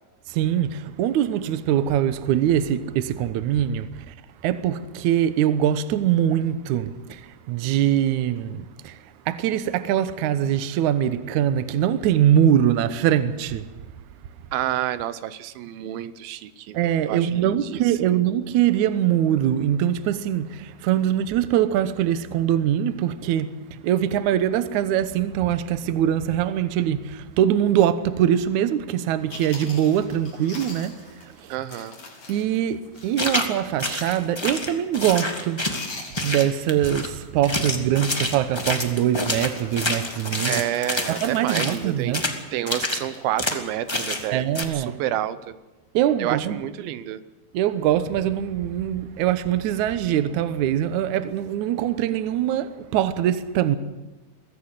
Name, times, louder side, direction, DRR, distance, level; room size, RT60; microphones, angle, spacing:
voice 1, 0.3-4.1 4.4-9.0 9.3-13.7 16.7-31.5 32.3-35.6 35.9-40.6 41.2-42.2 44.3-45.0 45.9-46.6 47.5-53.8, right 10 dB, 70° right, 2.1 m, -23 dB
voice 2, 14.5-16.8 17.1-18.2 31.5-31.9 40.4-42.3 42.5-44.5 44.7-45.6 46.2-47.2, right 12 dB, 85° right, 2.7 m, -29 dB
Chewing mastication, 29.0-29.1 29.3-33.3 33.6-33.7 34.3-34.6 34.8-35.3 35.6-37.1 37.4-37.6 38.1-38.3 38.7-42.6 43.0-43.3, left 3 dB, 45° left, 4.7 m, -42 dB
sound 1, 33.2-33.5 33.8-35.9 36.2-37.1 37.4-41.8 42.1-42.4 42.7-43.0 43.4-43.6 43.9-44.3 44.5-44.6, left 1 dB, 20° left, 0.6 m, -27 dB
22.5 x 16.0 x 8.1 m
omnidirectional pair, 4.1 m